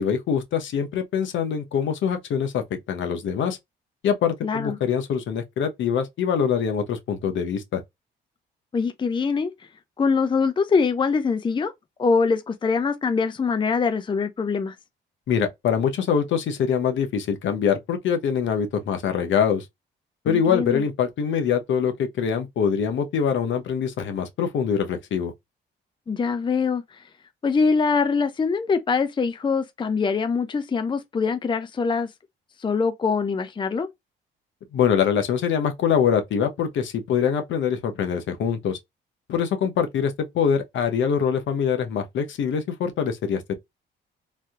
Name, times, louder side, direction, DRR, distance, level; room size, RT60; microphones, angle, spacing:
voice 1, 0.0-3.6 4.0-7.8 15.3-19.6 20.2-25.3 34.7-38.8 39.3-43.5, left 7 dB, 70° left, 1.0 m, -24 dB
voice 2, 4.4-4.8 8.7-9.5 10.0-11.7 12.0-14.8 20.3-20.8 26.1-26.8 27.4-32.1 32.6-33.9, left 5 dB, 25° left, 0.5 m, -23 dB
3.3 x 2.7 x 2.4 m
cardioid pair, 90°, 20 cm